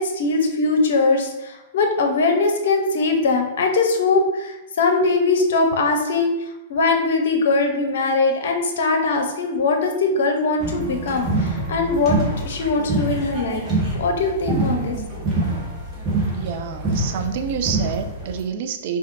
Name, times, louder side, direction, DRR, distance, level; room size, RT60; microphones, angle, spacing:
voice 1, 0.0-6.3 6.7-12.2 12.4-13.6 14.0-15.2, left 3 dB, 60° left, 4 dB, 0.6 m, -21 dB
sound 1, 10.6-18.4, right 2 dB, 25° right, 1.2 m, -25 dB
voice 2, 16.3-19.0, right 7 dB, 50° right, 7 dB, 0.4 m, -28 dB
4.2 x 2.3 x 2.6 m, 0.95 s
figure-of-eight pair, 105°, 0 cm